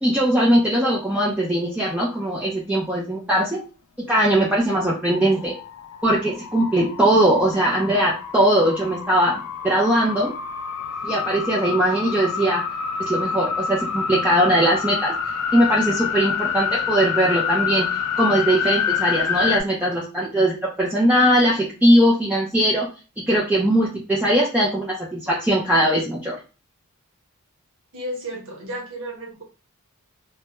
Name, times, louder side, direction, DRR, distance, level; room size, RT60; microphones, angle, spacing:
voice 1, 0.0-3.6 4.1-5.5 6.0-9.4 9.6-10.3 11.0-12.6 13.0-15.1 15.5-17.9 18.2-22.9 23.3-26.4, right 1 dB, 5° right, -5 dB, 0.4 m, -20 dB
sound 1, 5.1-19.6, left 7 dB, 80° left, 0.4 m, -27 dB
voice 2, 27.9-29.4, right 1 dB, 65° right, -1 dB, 0.9 m, -33 dB
2.2 x 2.1 x 2.9 m, 0.33 s
head